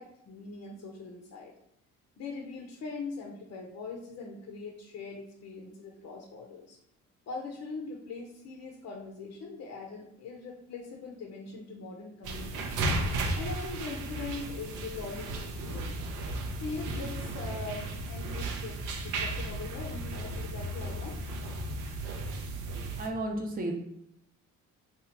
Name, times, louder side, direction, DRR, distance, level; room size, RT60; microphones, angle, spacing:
voice 1, 0.0-1.5 2.2-6.8 7.3-12.8 13.4-16.0 16.6-21.2, left 4 dB, 55° left, 1 dB, 0.6 m, -41 dB
sound 1, 12.2-23.1, right 2 dB, 85° right, 0.6 m, -35 dB
voice 2, 23.0-23.7, right 1 dB, 30° right, 1 dB, 0.6 m, -32 dB
2.9 x 2.4 x 4.3 m, 0.76 s
cardioid pair, 90°, 30 cm